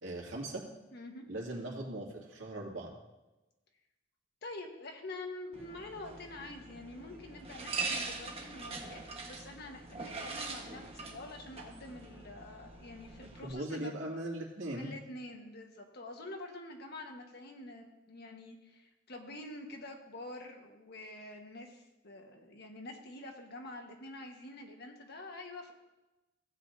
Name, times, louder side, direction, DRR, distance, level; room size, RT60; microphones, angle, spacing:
voice 1, 0.0-0.6 1.3-2.9 13.2-14.9, right 1 dB, 90° right, -2 dB, 2.2 m, -39 dB
voice 2, 0.9-1.2 4.4-9.0 9.2-14.0 14.7-25.7, left 2 dB, 55° left, 3 dB, 1.3 m, -47 dB
sound 1, 5.5-13.5, right 4 dB, 30° right, 1.4 m, -42 dB
15.5 x 8.4 x 2.7 m, 1.1 s
head